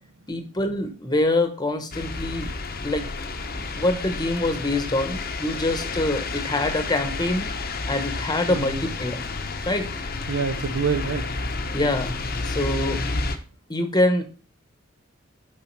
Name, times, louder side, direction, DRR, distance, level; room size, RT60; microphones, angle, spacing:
voice 1, 0.3-2.5 2.8-3.1 3.7-7.5 7.9-9.2 9.6-9.9 11.7-12.2 12.4-13.0 13.7-14.2, left 1 dB, 20° left, 7 dB, 1.0 m, -25 dB
sound 1, 1.9-13.4, left 3 dB, 45° left, 0.8 m, -30 dB
voice 2, 8.5-8.8 10.3-11.2, right 5 dB, 70° right, 7 dB, 0.6 m, -26 dB
7.1 x 4.9 x 4.5 m, 0.38 s
head